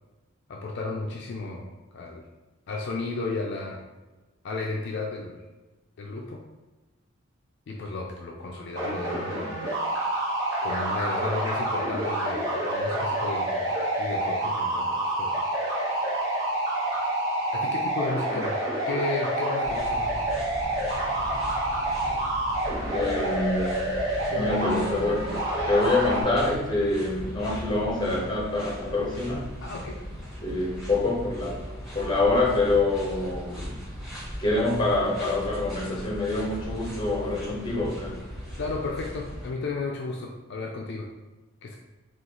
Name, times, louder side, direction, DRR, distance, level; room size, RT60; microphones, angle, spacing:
voice 1, 0.5-1.6 1.9-2.2 2.7-3.8 4.4-5.4 6.0-6.4 7.7-9.6 10.6-15.4 17.5-18.6 18.9-20.2 24.3-25.0 29.6-30.0 38.6-41.1 41.6-41.8, left 3 dB, 55° left, -1 dB, 0.4 m, -33 dB
sound 1, 8.7-26.2, right 1 dB, 55° right, 1.1 m, -28 dB
sound 2, 19.6-39.5, equal, ahead, 1.5 m, -38 dB
voice 2, 22.9-24.0 24.3-25.4 25.7-29.5 30.4-31.7 31.9-33.8 34.4-38.2, left 2 dB, 25° left, -3 dB, 0.8 m, -26 dB
3.8 x 2.4 x 2.9 m, 1.2 s
head